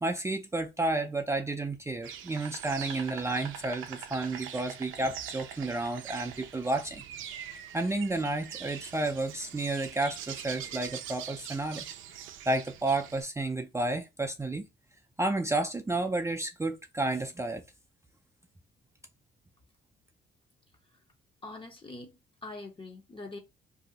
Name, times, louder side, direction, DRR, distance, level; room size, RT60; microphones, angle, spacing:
voice 1, 0.0-7.0 7.7-11.9 12.5-14.7 15.2-17.6, right 2 dB, 15° right, 0.4 m, -31 dB
Insect, 2.0-13.2, right 9 dB, 80° right, 0.4 m, -43 dB
voice 2, 21.4-23.4, left 2 dB, 25° left, 0.7 m, -43 dB
2.7 x 2.0 x 3.8 m
cardioid pair, 90°, 20 cm